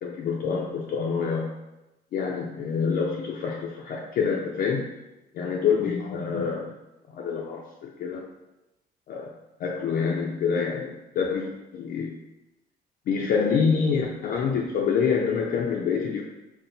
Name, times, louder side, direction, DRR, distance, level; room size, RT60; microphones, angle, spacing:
voice 1, 0.0-1.5 2.1-4.9 5.4-6.7 7.1-8.3 9.1-9.3 9.6-12.2 13.1-16.2, left 6 dB, 55° left, -1 dB, 0.4 m, -26 dB
4.2 x 2.1 x 3.8 m, 0.98 s
cardioid pair, 165°, 18 cm